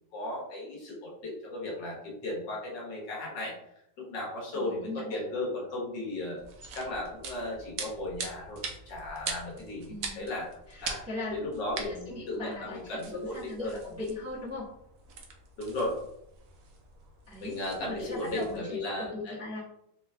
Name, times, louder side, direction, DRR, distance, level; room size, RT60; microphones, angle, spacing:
voice 1, 0.1-3.5 4.0-6.4 6.7-10.5 10.8-11.0 11.3-13.7 15.6-15.9 17.4-19.4, left 1 dB, 70° left, -3 dB, 1.7 m, -36 dB
voice 2, 4.5-5.2 9.9-10.2 10.7-11.4 11.8-14.7 17.3-19.6, left 2 dB, 10° right, -8 dB, 0.8 m, -39 dB
sound 1, 6.4-18.6, right 5 dB, 65° right, 0.9 m, -43 dB
4.3 x 2.3 x 3.3 m, 0.79 s
omnidirectional pair, 2.0 m